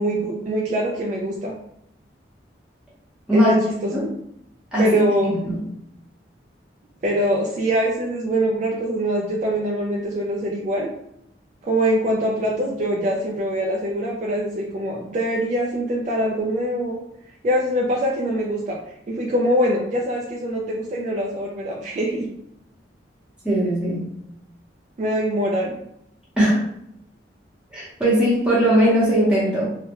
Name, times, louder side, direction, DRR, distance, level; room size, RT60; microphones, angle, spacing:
voice 1, 0.0-1.5 3.3-4.1 4.8-5.4 7.0-10.9 11.6-17.0 17.4-18.8 19.1-22.3 25.0-25.7, equal, 40° right, -3 dB, 0.3 m, -23 dB
voice 2, 4.7-5.6 23.4-24.0 26.4-26.6 27.7-29.7, right 1 dB, 5° right, -9 dB, 0.8 m, -19 dB
2.3 x 2.1 x 2.8 m, 0.76 s
head